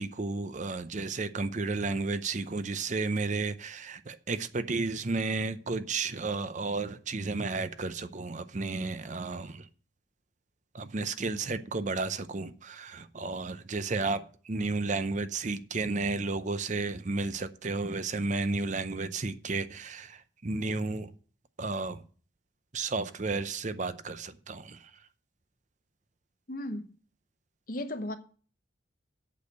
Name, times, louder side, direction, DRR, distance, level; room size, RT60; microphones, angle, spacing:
voice 1, 0.0-9.7 10.7-21.1 21.6-22.0 22.7-24.9, right 3 dB, 40° right, 0.6 m, -32 dB
voice 2, 26.5-26.9 27.7-28.2, left 1 dB, 50° left, 0.9 m, -35 dB
8.4 x 6.4 x 7.8 m
head